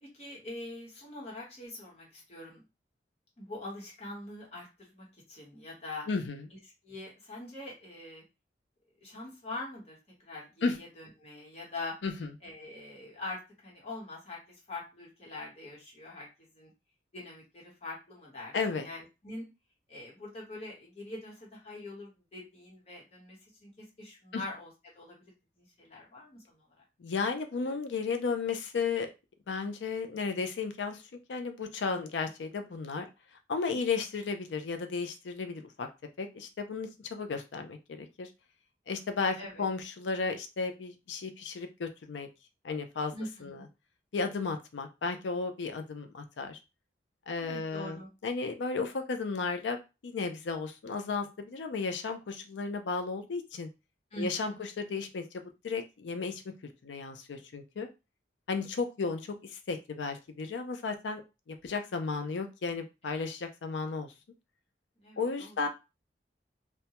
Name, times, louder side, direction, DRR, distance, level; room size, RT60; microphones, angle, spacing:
voice 1, 0.0-2.6 3.4-6.1 6.8-8.2 9.0-11.9 12.4-16.7 17.1-19.5 19.9-24.7 24.9-26.8 39.4-39.7 43.1-43.7 47.4-48.1 54.1-54.6 63.0-63.2 65.0-65.6, left 2 dB, 35° left, -4 dB, 1.1 m, -44 dB
voice 2, 6.1-6.5 10.6-10.8 12.0-12.3 18.5-18.9 24.3-24.4 27.0-29.1 29.5-31.0 31.3-33.1 33.5-35.9 36.2-38.3 38.9-42.3 42.6-43.1 43.4-43.6 44.1-46.6 47.3-49.8 50.0-53.7 54.2-56.4 56.8-57.9 58.5-61.2 61.5-64.1 65.2-65.7, left 4 dB, 85° left, 7 dB, 0.4 m, -34 dB
2.2 x 2.1 x 2.8 m, 0.27 s
head